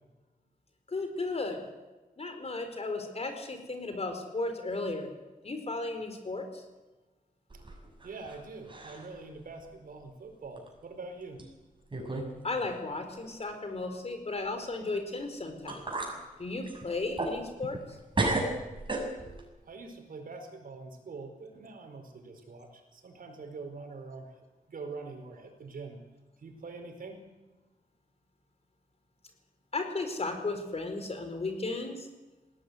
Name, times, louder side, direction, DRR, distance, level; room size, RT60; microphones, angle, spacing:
voice 1, 0.9-1.6 2.2-5.1 5.4-6.6 12.4-15.8 16.4-17.8 29.7-32.1, left 3 dB, 45° left, 6 dB, 4.5 m, -35 dB
sound 1, 7.5-8.4 8.7-9.2 9.6-9.7 10.6-10.7 11.4-11.5 11.9-12.3 12.6-12.7 15.2-15.3 15.7-16.2 16.6-17.9 18.1-19.4, right 2 dB, 35° right, 6.8 m, -33 dB
voice 2, 8.0-11.4 19.6-24.3 24.7-26.0 26.4-27.2, right 3 dB, 80° right, 5 dB, 4.8 m, -44 dB
20.5 x 17.5 x 9.7 m, 1.2 s
wide cardioid pair, 95°, 15 cm